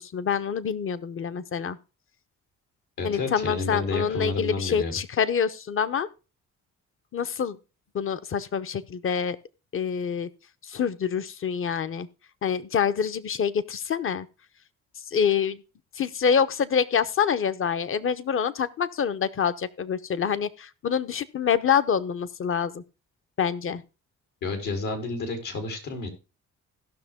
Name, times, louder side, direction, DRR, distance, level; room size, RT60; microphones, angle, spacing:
voice 1, 0.0-1.8 3.0-6.1 7.1-7.6 7.9-9.4 9.7-10.3 10.6-12.1 12.4-14.3 15.1-15.6 15.9-22.8 23.4-23.8, left 7 dB, 45° left, 0.9 m, -26 dB
voice 2, 3.0-4.9 24.4-26.1, left 3 dB, 80° left, 3.7 m, -30 dB
16.5 x 6.1 x 3.6 m
cardioid pair, 90°, 30 cm